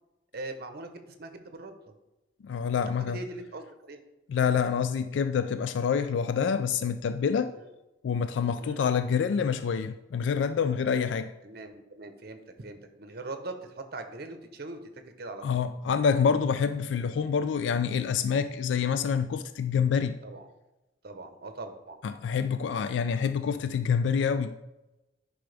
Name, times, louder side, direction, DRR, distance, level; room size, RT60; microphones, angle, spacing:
voice 1, 0.3-1.9 2.9-4.0 7.5-7.7 8.6-8.8 11.4-15.6 20.2-20.5 21.0-22.0, right 2 dB, 60° right, 0.9 m, -41 dB
voice 2, 2.4-3.2 4.3-7.5 8.0-11.3 15.4-20.2 22.0-24.5, left 6 dB, 80° left, 0.3 m, -27 dB
10.0 x 5.1 x 3.4 m
head